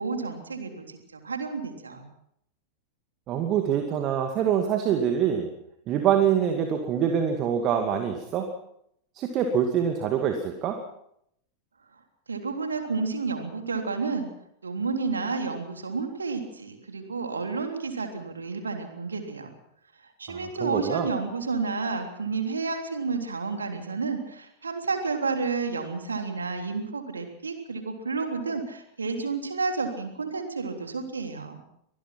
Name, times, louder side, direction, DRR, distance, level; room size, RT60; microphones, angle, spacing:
voice 1, 0.0-2.1 12.3-14.3 14.6-19.5 20.0-31.6, right 4 dB, 75° right, 5 dB, 3.5 m, -31 dB
voice 2, 3.3-5.5 5.9-8.5 9.2-10.8 20.3-21.1, right 8 dB, 35° right, 5 dB, 2.3 m, -25 dB
24.5 x 19.5 x 5.9 m, 0.72 s
figure-of-eight pair, 90°, 0 cm